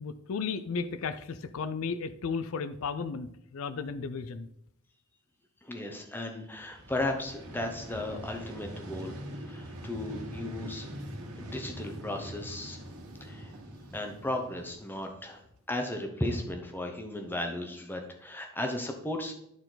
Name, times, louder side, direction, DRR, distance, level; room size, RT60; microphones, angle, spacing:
voice 1, 0.0-4.5, left 5 dB, 70° left, 13 dB, 0.4 m, -34 dB
voice 2, 5.6-9.2 9.5-10.9 11.4-12.8 13.2-13.5 13.9-15.4 15.7-19.3, left 1 dB, 10° left, 3 dB, 0.9 m, -35 dB
Vehicle, 6.5-15.5, right 1 dB, 90° right, 1.5 m, -43 dB
11.0 x 4.4 x 3.9 m, 0.76 s
head